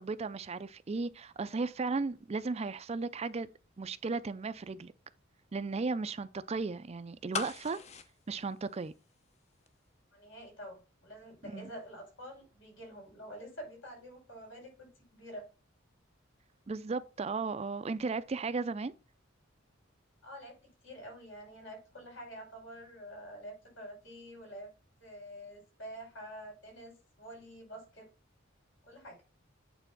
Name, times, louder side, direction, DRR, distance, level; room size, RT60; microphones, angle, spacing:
voice 1, 0.0-3.5 3.8-4.9 5.5-7.8 8.3-8.9 11.4-11.7 16.7-18.9, right 4 dB, 35° right, 0.4 m, -35 dB
sound 1, 7.3-9.4 9.7-9.8, left 5 dB, 35° left, 0.7 m, -39 dB
voice 2, 10.1-15.5 20.2-20.6 20.8-24.7 25.0-28.1 28.8-29.2, equal, 75° left, 5.2 m, -47 dB
9.1 x 3.5 x 5.9 m
head